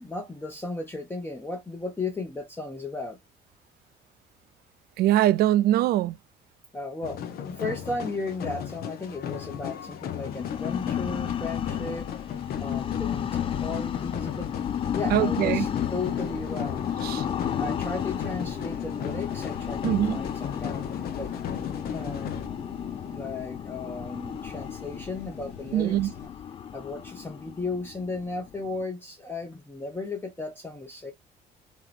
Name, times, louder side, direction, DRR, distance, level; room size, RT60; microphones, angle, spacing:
voice 1, 0.0-3.2 6.7-12.1 12.6-14.5 14.9-16.9 17.6-21.3 21.9-22.5 23.1-26.1 26.7-31.1, left 3 dB, 15° left, 0.8 m, -35 dB
voice 2, 5.0-6.2 15.1-15.7 17.0-17.2 19.8-20.2 25.7-26.1, right 13 dB, 65° right, 0.4 m, -22 dB
street carnival, 7.0-22.5, left 8 dB, 65° left, 0.7 m, -37 dB
Ghostly Breathing, 10.1-28.8, left 9 dB, 30° left, 0.3 m, -33 dB
sound 1, 16.0-26.3, left 4 dB, 85° left, 1.5 m, -44 dB
3.0 x 2.8 x 2.4 m
cardioid pair, 110°, 17 cm